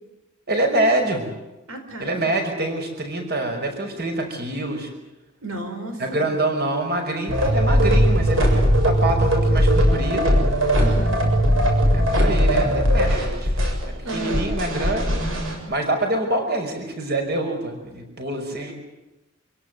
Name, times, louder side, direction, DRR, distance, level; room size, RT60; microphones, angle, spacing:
voice 1, 0.5-1.3 2.0-4.9 6.0-10.4 11.9-15.3 15.7-18.7, right 1 dB, 50° right, 4 dB, 5.6 m, -25 dB
voice 2, 1.7-2.2 5.4-6.3 10.8-11.3 14.0-14.5, right 1 dB, 90° right, 5 dB, 4.8 m, -33 dB
sound 1, 7.3-15.5, equal, 65° right, 7.5 m, -19 dB
26.5 x 17.0 x 9.4 m, 1.0 s
head